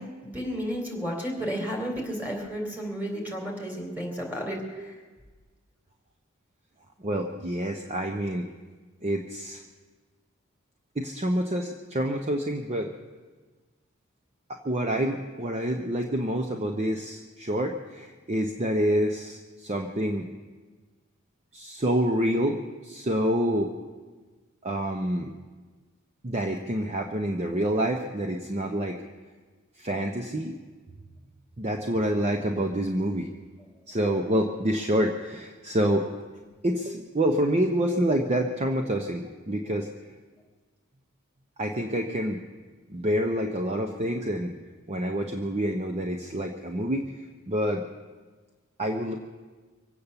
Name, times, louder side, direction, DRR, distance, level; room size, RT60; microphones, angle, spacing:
voice 1, 0.0-5.0, equal, 10° right, -2 dB, 3.2 m, -32 dB
voice 2, 4.5-4.9 7.0-8.5 9.0-9.6 11.0-12.9 14.5-20.3 21.5-23.7 24.6-25.3 26.2-29.0 29.8-30.6 31.6-33.3 33.9-36.1 36.6-39.9 41.6-42.4 42.9-44.5 44.9-47.8 48.8-49.2, equal, 30° right, 4 dB, 0.8 m, -27 dB
24.0 x 8.5 x 6.9 m, 1.4 s
head